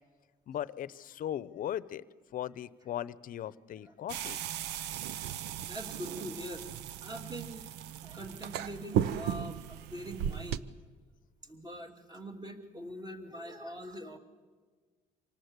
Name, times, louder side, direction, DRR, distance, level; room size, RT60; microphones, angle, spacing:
voice 1, 0.5-2.0 2.3-4.4, left 11 dB, 55° left, 17 dB, 0.8 m, -38 dB
sound 1, 4.1-10.6, right 10 dB, 85° right, 0.7 m, -36 dB
voice 2, 5.6-6.6 7.0-7.6 8.0-10.7 11.4-14.2, equal, 25° right, 4 dB, 2.8 m, -43 dB
26.0 x 19.0 x 8.2 m, 1.5 s
cardioid pair, 110°, 17 cm